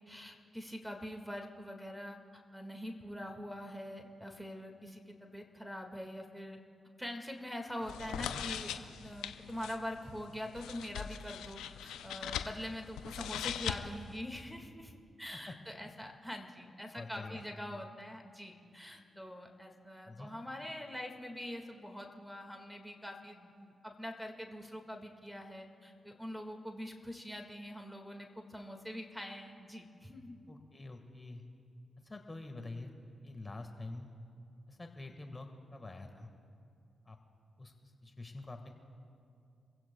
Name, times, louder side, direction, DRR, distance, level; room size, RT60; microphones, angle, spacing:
voice 1, 0.0-2.2 2.5-6.6 7.0-30.4, equal, ahead, 3 dB, 1.8 m, -44 dB
sound 1, 7.8-14.2, left 9 dB, 90° left, 0.5 m, -41 dB
voice 2, 8.1-8.5 15.3-15.5 16.9-17.4 20.0-20.3 30.5-31.4 32.0-32.9 33.2-34.1 34.7-36.3 37.0-37.2 37.6-38.7, left 2 dB, 30° left, 4 dB, 1.6 m, -46 dB
27.0 x 16.0 x 2.3 m, 2.4 s
supercardioid pair, 45°, 0 cm